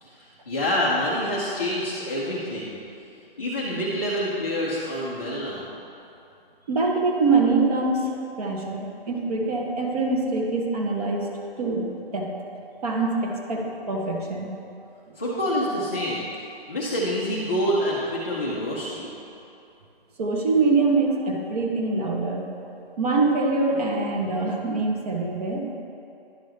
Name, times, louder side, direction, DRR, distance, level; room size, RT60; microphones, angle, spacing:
voice 1, 0.0-2.8 3.4-5.7 15.2-16.3 16.7-19.1, equal, 15° left, -9 dB, 0.3 m, -27 dB
voice 2, 6.7-11.3 11.6-11.9 12.1-12.3 12.8-14.5 15.1-15.2 20.2-22.5 23.0-25.7, right 3 dB, 40° right, 0 dB, 0.9 m, -24 dB
10.5 x 5.2 x 3.2 m, 2.7 s
hypercardioid pair, 150°, 30 cm